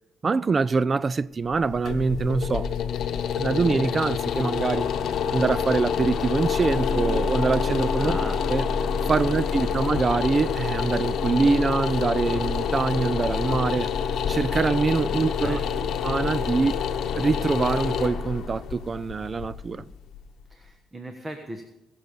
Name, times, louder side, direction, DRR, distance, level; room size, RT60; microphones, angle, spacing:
voice 1, 0.2-2.7 3.3-4.9 5.3-8.2 8.5-8.6 9.1-13.9 14.3-15.6 16.0-16.8 17.2-19.8, right 4 dB, 35° right, 0.3 m, -24 dB
sound 1, 1.5-20.4, left 6 dB, 70° left, 0.9 m, -27 dB
voice 2, 8.0-8.4 9.2-9.3 9.6-9.8 15.0-15.9 19.8-19.9 20.5-21.6, right 1 dB, 15° right, 1.2 m, -38 dB
20.5 x 7.0 x 5.3 m
cardioid pair, 90°, 0 cm